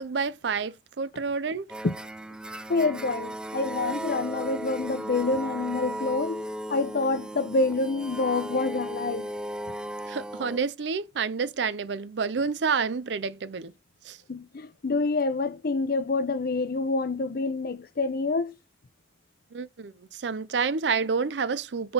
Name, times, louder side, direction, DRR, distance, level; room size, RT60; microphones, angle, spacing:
voice 1, 0.0-1.7 10.1-13.7 14.0-14.2 19.5-21.9, right 5 dB, 75° right, 0.5 m, -29 dB
sound 1, 1.7-10.6, right 1 dB, 5° right, 0.3 m, -36 dB
voice 2, 2.7-9.3 14.3-18.5, left 3 dB, 55° left, 0.6 m, -27 dB
5.6 x 3.8 x 5.3 m
head